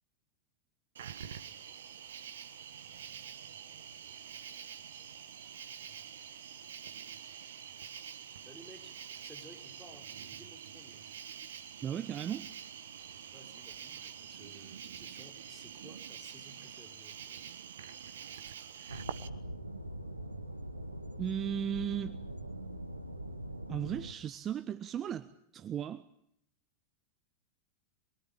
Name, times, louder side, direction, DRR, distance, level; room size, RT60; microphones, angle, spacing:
Cricket, 0.9-19.3, right 8 dB, 60° right, 1.4 m, -46 dB
voice 1, 8.4-11.1 13.2-17.4, equal, ahead, 3 dB, 5.0 m, -57 dB
voice 2, 11.8-12.5 21.2-22.2 23.7-26.0, right 9 dB, 25° right, 13 dB, 1.1 m, -36 dB
sound 1, 18.9-24.1, right 1 dB, 85° right, 1.7 m, -42 dB
26.5 x 23.0 x 8.9 m, 0.74 s
figure-of-eight pair, 90°, 0 cm